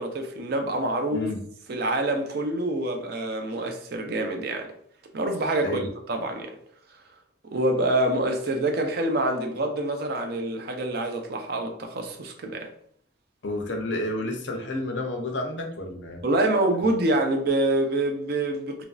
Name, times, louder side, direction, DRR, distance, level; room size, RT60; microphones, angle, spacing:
voice 1, 0.0-1.3 1.7-4.7 5.1-6.6 7.4-12.7 16.2-18.8, right 1 dB, 55° right, 0.5 m, -26 dB
voice 2, 13.4-16.2, left 2 dB, 70° left, 0.6 m, -30 dB
3.0 x 2.5 x 2.3 m
head